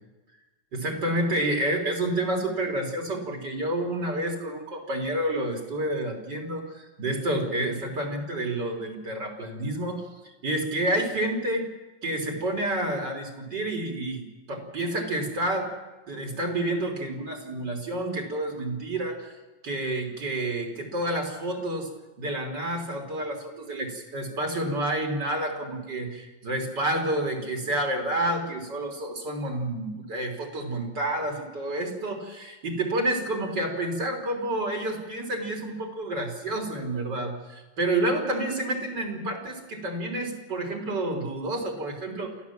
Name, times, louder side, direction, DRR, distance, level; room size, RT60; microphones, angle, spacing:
voice 1, 0.7-10.0 10.4-11.7 12.0-15.7 16.1-19.3 19.6-21.9 22.2-42.3, right 1 dB, 65° right, 3 dB, 4.3 m, -29 dB
28.0 x 15.0 x 7.4 m, 1.1 s
omnidirectional pair, 2.0 m